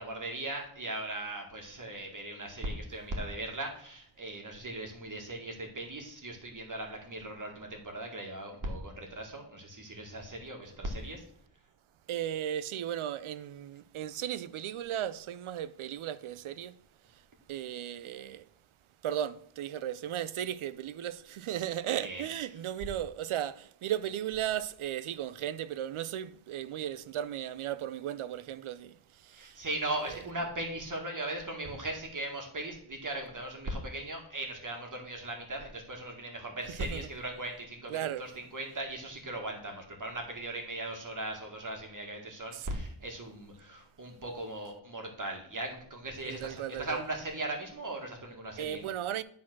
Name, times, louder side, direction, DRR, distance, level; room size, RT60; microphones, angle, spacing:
voice 1, 0.0-11.2 22.0-22.2 29.3-48.8, right 1 dB, 40° right, 1.9 m, -38 dB
voice 2, 12.1-16.8 17.1-18.5 19.0-29.6 30.0-30.2 36.7-37.1 37.9-38.3 42.5-42.7 46.2-47.0 48.5-49.2, right 11 dB, 85° right, 0.6 m, -36 dB
8.6 x 4.1 x 6.1 m
wide cardioid pair, 105°, 48 cm